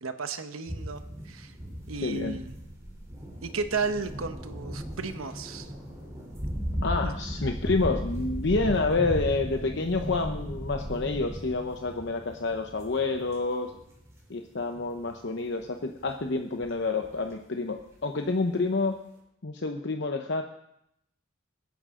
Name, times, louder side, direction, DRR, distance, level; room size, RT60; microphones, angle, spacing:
voice 1, 0.0-1.5 1.9-2.5 3.4-5.7 7.0-7.1 7.4-7.5, right 4 dB, 85° right, 9 dB, 1.1 m, -34 dB
sound 1, 0.7-14.4 14.7-15.7 16.1-16.8 17.0-17.3 17.8-17.9, equal, 15° right, 3.5 m, -36 dB
voice 2, 2.0-2.3 6.8-13.7 14.3-18.9 19.4-20.4, left 3 dB, 55° left, 4 dB, 0.8 m, -28 dB
23.0 x 10.0 x 3.8 m, 0.80 s
head